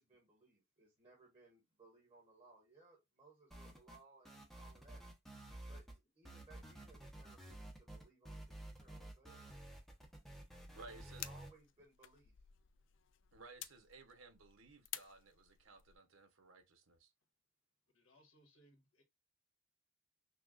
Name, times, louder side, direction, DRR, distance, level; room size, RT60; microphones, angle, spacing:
voice 1, 0.0-5.0 5.6-5.9 6.1-9.5 10.8-10.9 11.2-12.5, right 3 dB, 25° right, 1.6 m, -65 dB
sound 1, 3.5-4.0 4.3-6.0 6.3-11.5, right 1 dB, ahead, 0.7 m, -52 dB
voice 2, 10.7-11.3 13.3-17.1, right 3 dB, 90° right, 1.1 m, -58 dB
sound 2, 10.9-16.0, left 13 dB, 70° left, 0.4 m, -53 dB
voice 3, 17.9-19.0, equal, 90° left, 1.5 m, -68 dB
5.9 x 2.4 x 2.4 m
head